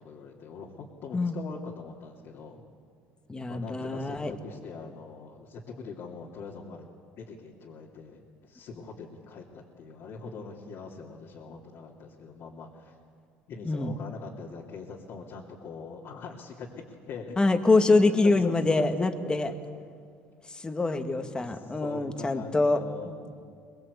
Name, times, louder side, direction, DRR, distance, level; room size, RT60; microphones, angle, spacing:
voice 1, 0.0-2.6 3.5-6.9 7.2-12.9 13.5-17.4 17.9-18.0 18.2-19.8 21.1-23.4, left 5 dB, 60° left, -3 dB, 2.9 m, -42 dB
voice 2, 3.3-4.3 13.7-14.0 17.4-19.5 20.5-23.2, left 3 dB, 15° left, 7 dB, 1.9 m, -25 dB
23.5 x 21.5 x 8.3 m, 2.3 s
supercardioid pair, 105°, 5 cm